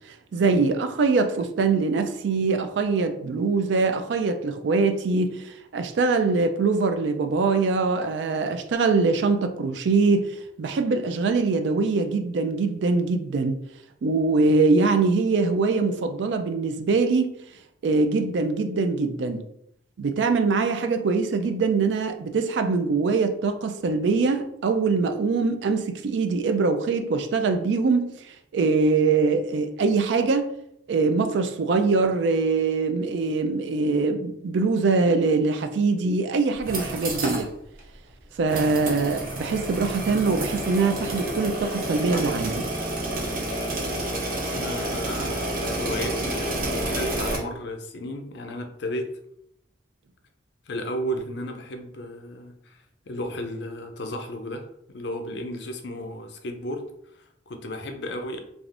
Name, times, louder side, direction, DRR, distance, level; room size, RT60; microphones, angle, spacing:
voice 1, 0.3-13.6 14.0-17.3 17.8-19.4 20.0-28.1 28.5-30.5 30.9-37.5 38.4-42.7, right 4 dB, 85° right, 8 dB, 0.4 m, -23 dB
sound 1, 36.5-37.5 37.8-37.9 38.5-47.4, right 1 dB, 50° right, 0.7 m, -29 dB
voice 2, 44.5-49.2 50.7-58.4, equal, 70° left, 5 dB, 0.5 m, -34 dB
3.3 x 2.5 x 2.4 m, 0.75 s
head